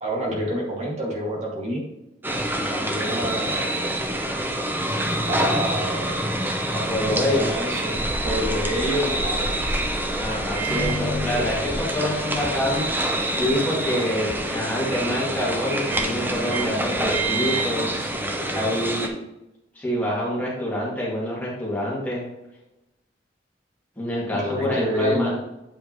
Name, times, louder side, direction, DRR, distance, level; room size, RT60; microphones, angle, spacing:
voice 1, 0.0-1.8 2.6-3.9 5.3-6.2 6.9-9.5 18.0-18.6 24.3-25.4, equal, 40° right, -3 dB, 2.1 m, -28 dB
sound 1, 2.2-19.1, right 1 dB, 10° right, 0.7 m, -26 dB
voice 2, 6.7-7.6 10.2-12.9 13.3-18.2 18.5-19.2 19.7-22.3 24.0-25.3, left 1 dB, 10° left, -6 dB, 2.2 m, -26 dB
Microwave oven, 10.5-18.6, right 3 dB, 80° right, 2.4 m, -33 dB
8.9 x 5.3 x 3.1 m, 0.94 s
head